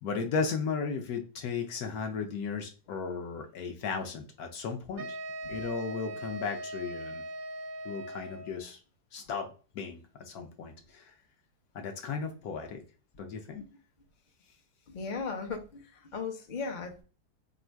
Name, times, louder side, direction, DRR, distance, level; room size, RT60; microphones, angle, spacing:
voice 1, 0.0-5.2 5.5-7.2 7.8-8.8 9.1-10.0 10.3-11.1 11.7-12.8 13.2-13.6, left 5 dB, 70° left, 4 dB, 1.1 m, -35 dB
sound 1, 5.0-8.6, right 1 dB, 55° right, 0.6 m, -40 dB
voice 2, 14.9-17.0, left 4 dB, 45° left, 4 dB, 0.6 m, -37 dB
3.1 x 2.5 x 4.4 m, 0.36 s
omnidirectional pair, 1.8 m